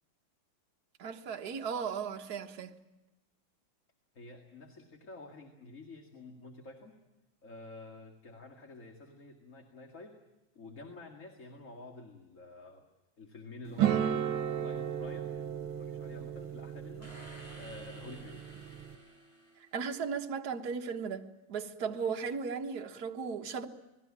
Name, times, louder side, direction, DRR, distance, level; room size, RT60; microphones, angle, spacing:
voice 1, 1.0-2.7 19.6-23.7, right 6 dB, 50° right, 1.9 m, -36 dB
voice 2, 4.1-7.0 7.4-10.2 10.5-12.9 13.2-14.2 14.6-18.6, left 2 dB, 40° left, 2.5 m, -50 dB
sound 1, 13.8-19.0, right 9 dB, 80° right, 1.9 m, -34 dB
sound 2, 17.0-20.2, equal, 15° right, 7.5 m, -53 dB
29.0 x 20.5 x 7.4 m
omnidirectional pair, 2.2 m